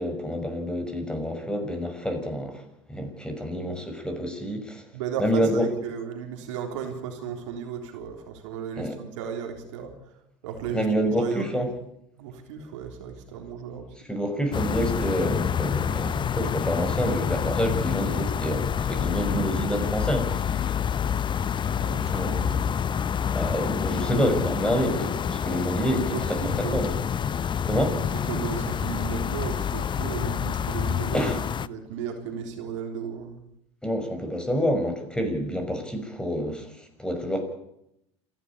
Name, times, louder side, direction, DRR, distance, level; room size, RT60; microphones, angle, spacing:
voice 1, 0.0-2.6 2.9-4.8 5.2-5.7 8.8-9.0 10.7-11.7 14.0-20.7 22.1-22.5 23.3-27.0 27.6-28.0 31.1-31.4 33.8-37.4, equal, 5° left, 6 dB, 6.2 m, -28 dB
voice 2, 4.9-10.1 10.4-11.6 12.2-14.1 21.8-22.5 26.1-26.8 28.1-31.3 31.7-33.4, right 6 dB, 70° right, 4 dB, 3.6 m, -35 dB
sound 1, 14.5-31.7, left 8 dB, 30° left, 0.8 m, -27 dB
27.5 x 12.0 x 8.5 m, 0.79 s
hypercardioid pair, 75°, 16 cm